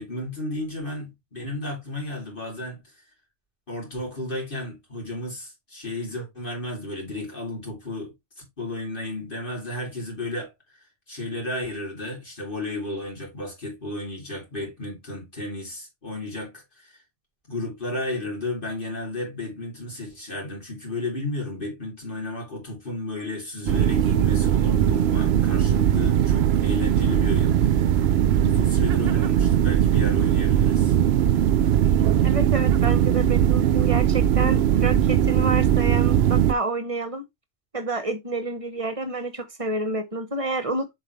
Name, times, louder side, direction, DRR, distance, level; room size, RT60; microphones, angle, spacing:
voice 1, 0.0-2.8 3.7-16.9 17.5-27.9 28.4-30.9, left 2 dB, 45° left, 3.8 m, -33 dB
sound 1, 23.7-36.5, right 10 dB, 65° right, 0.7 m, -20 dB
voice 2, 32.2-37.3 37.7-40.9, right 2 dB, 30° right, 1.1 m, -29 dB
7.4 x 4.8 x 3.2 m
omnidirectional pair, 1.3 m